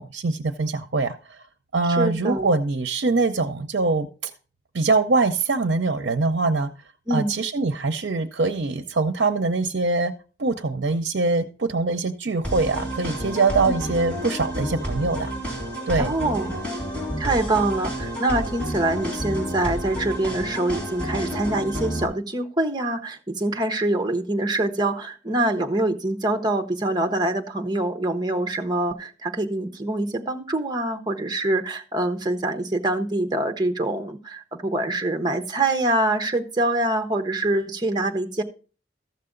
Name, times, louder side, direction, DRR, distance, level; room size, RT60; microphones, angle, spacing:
voice 1, 0.0-1.4 1.7-4.3 4.7-6.7 7.1-10.1 10.4-15.3 15.9-16.1, right 3 dB, 75° right, 8 dB, 0.7 m, -23 dB
voice 2, 1.9-2.6 7.1-7.3 13.6-13.8 16.0-16.5 17.2-38.4, right 2 dB, 25° right, 6 dB, 1.0 m, -25 dB
sound 1, 12.4-22.0, equal, 5° left, 3.0 m, -30 dB
14.0 x 6.7 x 3.8 m, 0.37 s
head